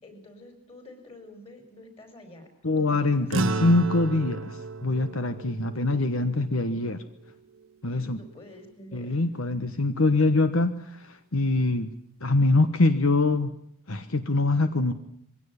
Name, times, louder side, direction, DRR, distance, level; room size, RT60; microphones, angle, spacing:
voice 1, 0.0-3.6 7.9-9.2, left 1 dB, 25° left, 6 dB, 5.4 m, -48 dB
voice 2, 2.6-7.0 7.8-8.2 8.9-11.9 12.2-13.5 13.9-14.9, left 2 dB, 75° left, 10 dB, 1.2 m, -24 dB
sound 1, 3.3-8.0, right 2 dB, 65° right, 1.1 m, -33 dB
22.5 x 17.0 x 9.7 m, 0.71 s
head